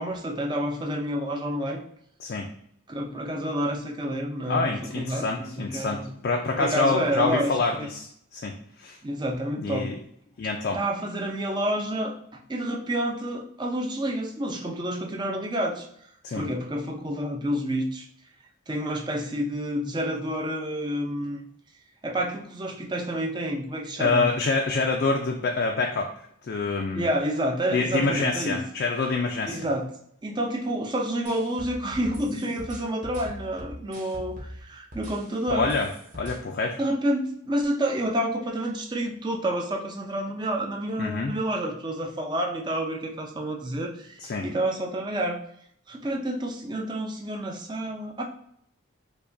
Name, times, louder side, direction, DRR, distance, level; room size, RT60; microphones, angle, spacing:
voice 1, 0.0-1.8 2.9-6.1 6.5-7.9 9.0-9.9 10.7-12.1 12.5-15.9 16.3-18.1 18.7-21.4 22.0-24.3 26.9-28.6 29.5-29.9 30.2-35.7 36.8-45.4 45.9-48.2, right 1 dB, 20° right, 1 dB, 0.4 m, -29 dB
voice 2, 4.5-8.5 8.8-9.0 9.6-9.9 10.4-10.8 16.2-16.5 24.0-26.1 26.4-27.0 27.7-29.7 35.5-35.9 36.1-36.8 41.0-41.3 44.2-44.5, left 3 dB, 55° left, 2 dB, 0.3 m, -26 dB
sound 1, 31.2-34.6 34.9-36.3, equal, 40° right, 0.8 m, -40 dB
4.6 x 2.2 x 2.6 m, 0.70 s
head